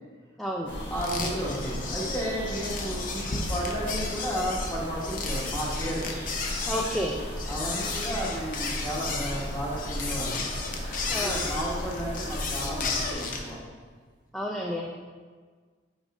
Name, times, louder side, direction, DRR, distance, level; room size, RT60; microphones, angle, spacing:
voice 1, 0.4-0.7 6.7-7.2 11.1-11.5 14.3-14.8, equal, ahead, -3 dB, 0.4 m, -30 dB
sound 1, 0.7-13.1, equal, 65° left, 1.5 m, -36 dB
voice 2, 0.9-6.1 7.5-10.4 11.1-13.6, equal, 15° left, -5 dB, 1.3 m, -33 dB
sound 2, 1.0-13.5, left 4 dB, 45° left, 0.7 m, -34 dB
5.4 x 5.0 x 3.6 m, 1.5 s
head